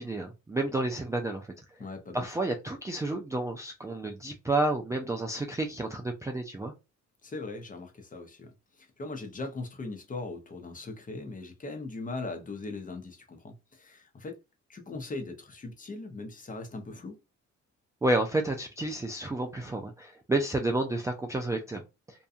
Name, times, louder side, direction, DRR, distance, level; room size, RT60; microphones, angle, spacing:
voice 1, 0.0-1.5 2.1-6.7 18.0-21.8, right 2 dB, 10° right, 0.3 m, -30 dB
voice 2, 1.8-2.2 7.2-14.4 14.7-17.2, left 3 dB, 25° left, 0.7 m, -40 dB
2.7 x 2.2 x 2.4 m
cardioid pair, 90°, 30 cm